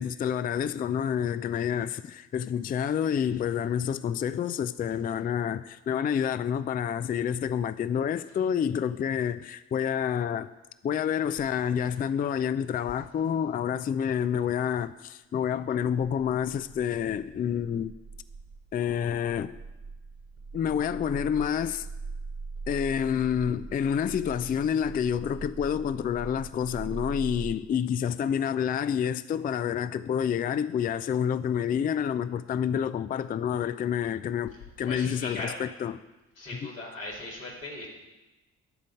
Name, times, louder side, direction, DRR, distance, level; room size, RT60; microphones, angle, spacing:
voice 1, 0.0-10.5 10.8-17.9 18.7-19.5 20.5-21.9 22.7-36.0, left 8 dB, 25° left, 0.4 m, -28 dB
sound 1, 16.6-27.5, right 4 dB, 45° right, 1.4 m, -42 dB
voice 2, 34.8-35.6 36.4-37.9, left 2 dB, 90° left, 2.6 m, -38 dB
13.0 x 5.2 x 8.4 m
figure-of-eight pair, 45°, 39 cm